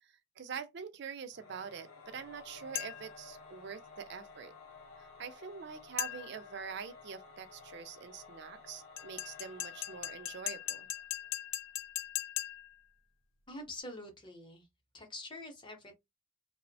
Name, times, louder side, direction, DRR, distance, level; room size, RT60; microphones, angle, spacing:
voice 1, 0.0-4.5 5.0-10.9, right 6 dB, 55° right, 0.4 m, -45 dB
Singing / Musical instrument, 1.3-11.4, left 4 dB, 90° left, 0.7 m, -54 dB
sound 1, 2.7-3.2 6.0-6.5 9.0-12.8, left 13 dB, 65° left, 0.4 m, -39 dB
voice 2, 13.5-14.7 14.9-15.9, left 1 dB, 20° left, 0.7 m, -46 dB
2.9 x 2.0 x 2.6 m
head